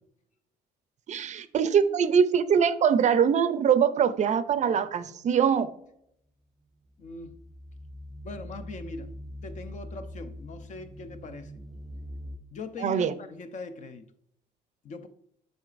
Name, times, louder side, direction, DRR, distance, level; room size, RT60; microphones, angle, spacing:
voice 1, 1.1-5.7 12.8-13.1, right 7 dB, 45° right, 13 dB, 0.5 m, -23 dB
sound 1, 6.7-12.4, left 1 dB, ahead, 0.9 m, -43 dB
voice 2, 7.0-7.4 8.2-9.1 9.4-11.5 12.5-14.0 14.8-15.1, left 3 dB, 50° left, 9 dB, 0.7 m, -41 dB
7.8 x 5.1 x 2.5 m, 0.73 s
cardioid pair, 105°, 16 cm